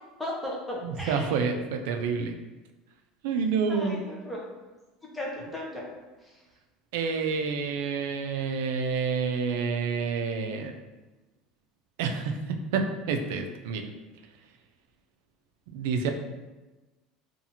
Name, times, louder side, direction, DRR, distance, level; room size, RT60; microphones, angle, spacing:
voice 1, 0.2-1.4 3.7-4.4 5.1-5.8 6.2-6.3, left 1 dB, 5° left, -4 dB, 0.6 m, -36 dB
voice 2, 0.8-2.3 3.2-4.0 6.9-10.7 12.0-13.8 15.7-16.1, right 5 dB, 85° right, 5 dB, 0.3 m, -28 dB
2.6 x 2.4 x 2.8 m, 1.2 s
supercardioid pair, 140°, 0 cm